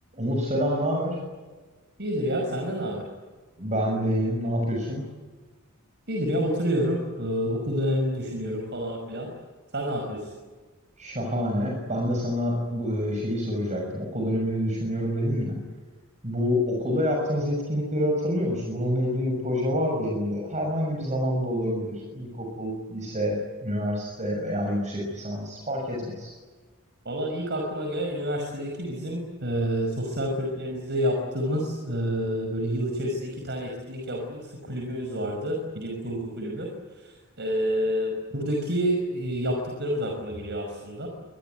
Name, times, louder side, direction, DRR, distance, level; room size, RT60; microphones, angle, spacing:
voice 1, 0.1-1.2 3.6-5.0 11.0-15.6 16.2-23.4 23.6-26.3, equal, 35° right, 0 dB, 6.5 m, -27 dB
voice 2, 2.0-3.0 6.1-9.3 9.7-10.2 27.1-36.7 37.4-41.1, equal, 55° right, 2 dB, 5.6 m, -28 dB
26.5 x 22.0 x 9.3 m, 1.3 s
head